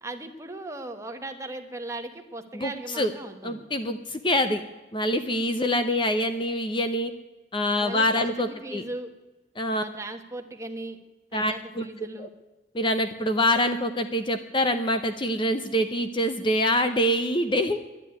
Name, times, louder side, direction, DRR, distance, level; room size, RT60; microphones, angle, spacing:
voice 1, 0.0-3.6 7.8-9.1 9.7-11.0 11.3-12.3, right 2 dB, 15° right, 5 dB, 1.1 m, -38 dB
voice 2, 2.5-3.1 3.4-4.6 4.9-7.1 7.5-8.8 9.6-9.8 11.3-11.8 12.2-12.3 12.7-17.8, left 1 dB, 25° left, 8 dB, 0.6 m, -25 dB
11.0 x 9.9 x 9.4 m, 1.2 s
head